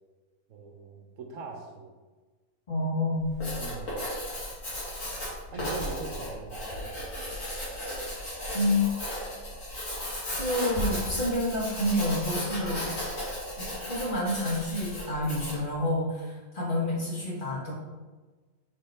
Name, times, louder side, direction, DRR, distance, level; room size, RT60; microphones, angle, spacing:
voice 1, 0.5-1.9 3.6-3.9 5.5-7.1, right 4 dB, 60° right, 3 dB, 1.1 m, -41 dB
voice 2, 2.7-3.3 8.5-8.9 10.3-12.9 13.6-17.7, left 1 dB, 35° left, -5 dB, 1.8 m, -28 dB
Writing, 3.2-15.7, left 1 dB, 60° left, 2.5 m, -35 dB
5.4 x 4.9 x 4.4 m, 1.3 s
omnidirectional pair, 1.6 m